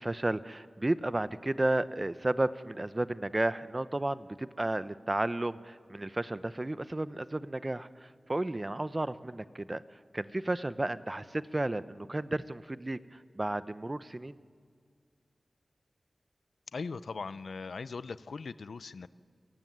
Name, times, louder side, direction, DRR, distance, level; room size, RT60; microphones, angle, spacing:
voice 1, 0.0-14.4, right 2 dB, 30° right, 14 dB, 0.8 m, -33 dB
voice 2, 16.7-19.1, left 4 dB, 85° left, 16 dB, 0.6 m, -39 dB
29.5 x 17.0 x 9.4 m, 2.2 s
cardioid pair, 50°, 0 cm